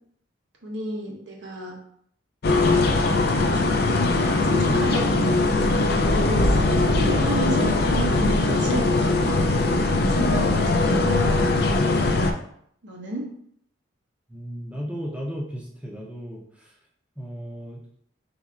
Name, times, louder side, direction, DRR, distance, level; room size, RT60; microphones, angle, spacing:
voice 1, 0.6-1.8 2.5-2.9 3.3-5.7 6.1-6.5 6.8-9.4 9.8-11.7 12.8-13.3, right 1 dB, 70° right, 0 dB, 1.1 m, -32 dB
sound 1, 2.4-12.3, left 2 dB, 55° left, 0.4 m, -21 dB
voice 2, 14.3-16.8 17.2-17.8, equal, 5° right, -2 dB, 0.7 m, -35 dB
4.3 x 4.2 x 2.4 m, 0.67 s
head